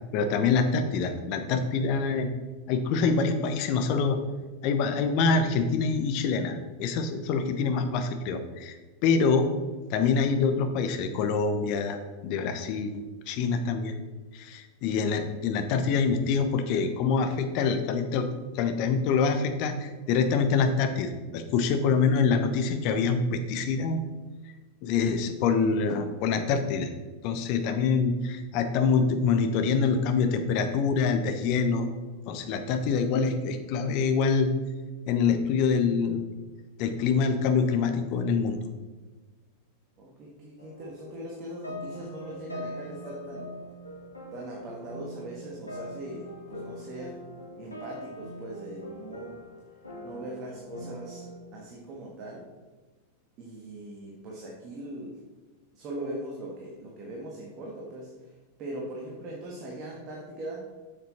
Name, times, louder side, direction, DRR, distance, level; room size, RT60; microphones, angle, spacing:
voice 1, 0.1-2.3 2.7-4.2 4.6-8.8 9.0-9.5 9.9-13.9 14.3-18.3 18.5-24.0 24.8-26.9 27.2-31.9 32.3-34.5 35.1-36.2 36.8-38.6, left 5 dB, 45° left, 8 dB, 0.9 m, -25 dB
voice 2, 40.0-43.5 44.3-47.2 47.5-49.3 50.0-51.3 51.5-52.4 53.4-55.2 55.7-60.6, right 1 dB, 35° right, -2 dB, 1.6 m, -40 dB
sound 1, 40.6-51.4, equal, 85° left, 1.8 m, -42 dB
7.4 x 7.4 x 4.2 m, 1.3 s
figure-of-eight pair, 90°, 0 cm